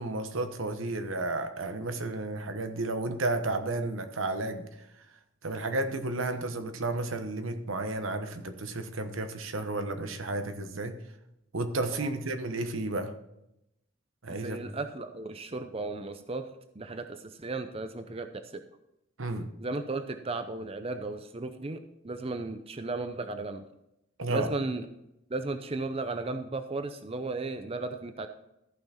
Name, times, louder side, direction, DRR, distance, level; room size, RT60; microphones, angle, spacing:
voice 1, 0.0-4.7 5.4-11.0 11.5-13.1 14.2-14.6 19.2-19.5 24.2-24.5, right 2 dB, 85° right, 8 dB, 1.1 m, -32 dB
voice 2, 14.3-18.6 19.6-23.6 24.3-24.9 25.3-28.3, right 3 dB, 30° right, 8 dB, 0.6 m, -35 dB
14.0 x 5.9 x 4.3 m, 0.85 s
head